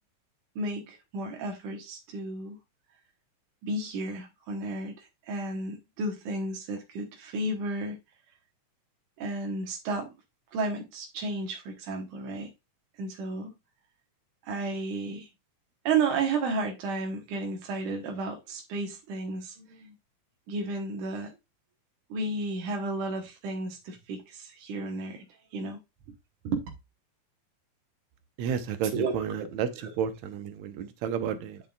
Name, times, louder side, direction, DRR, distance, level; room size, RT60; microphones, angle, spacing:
voice 1, 0.6-2.6 3.6-8.0 9.2-10.1 10.5-12.5 13.0-13.5 14.4-15.3 15.8-19.9 20.5-21.4 22.1-25.2 25.5-25.8 26.4-26.7 28.9-29.1 29.8-29.9, right 3 dB, 90° right, 2.8 m, -32 dB
voice 2, 28.4-29.7 30.0-31.6, right 8 dB, 75° right, 2.2 m, -31 dB
9.2 x 5.6 x 2.4 m
omnidirectional pair, 3.4 m